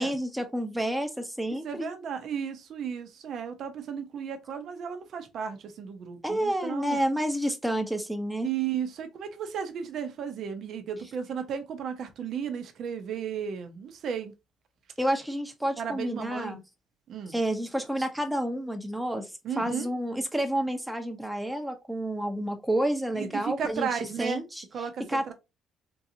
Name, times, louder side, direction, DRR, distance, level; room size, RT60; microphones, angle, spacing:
voice 1, 0.0-1.9 6.2-8.5 15.0-16.6 17.3-23.9 24.2-24.6 25.1-25.3, right 1 dB, 5° right, 0.9 m, -29 dB
voice 2, 1.5-7.0 8.4-14.3 15.8-16.6 17.1-17.4 19.4-19.9 23.1-24.4 24.7-25.3, right 7 dB, 60° right, 0.8 m, -34 dB
3.8 x 2.6 x 2.7 m
cardioid pair, 85°, 0 cm